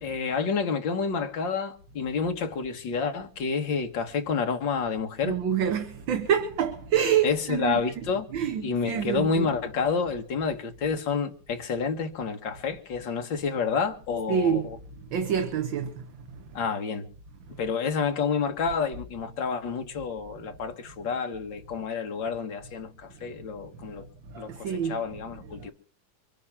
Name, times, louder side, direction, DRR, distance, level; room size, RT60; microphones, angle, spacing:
voice 1, 0.0-5.3 7.2-8.3 8.6-14.8 16.5-17.1 17.6-24.1 24.4-25.7, left 5 dB, 60° left, 2.2 m, -29 dB
voice 2, 5.2-8.0 8.3-9.5 14.3-14.7 15.1-16.4 23.9-24.0 24.3-25.1 25.5-25.7, right 8 dB, 65° right, 1.8 m, -27 dB
23.5 x 8.5 x 5.9 m
omnidirectional pair, 2.4 m